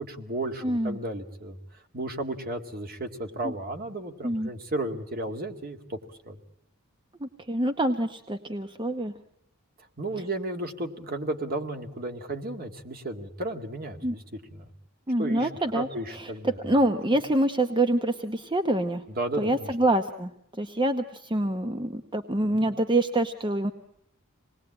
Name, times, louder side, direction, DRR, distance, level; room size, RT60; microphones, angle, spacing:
voice 1, 0.0-1.6 1.9-6.0 6.3-6.4 10.0-14.2 14.5-14.6 15.2-16.6 19.2-19.7 22.4-22.6, right 2 dB, 45° right, 5 dB, 2.1 m, -33 dB
voice 2, 0.6-1.0 3.4-3.5 4.2-4.5 7.2-9.1 14.0-14.1 15.1-19.0 19.4-23.7, right 1 dB, 20° right, 7 dB, 0.9 m, -26 dB
26.5 x 20.0 x 8.7 m, 0.74 s
head